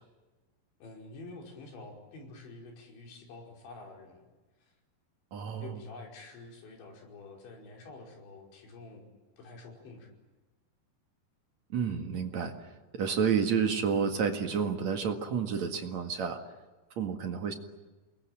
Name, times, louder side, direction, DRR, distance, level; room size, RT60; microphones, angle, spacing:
voice 1, 0.8-4.3 4.6-4.7 5.6-9.1 9.4-10.1, left 3 dB, 75° left, 0 dB, 7.5 m, -48 dB
voice 2, 5.3-5.7 11.7-12.5 13.0-16.4 17.0-17.5, right 6 dB, 50° right, 5 dB, 2.5 m, -30 dB
28.5 x 22.0 x 9.0 m, 1.2 s
omnidirectional pair, 5.2 m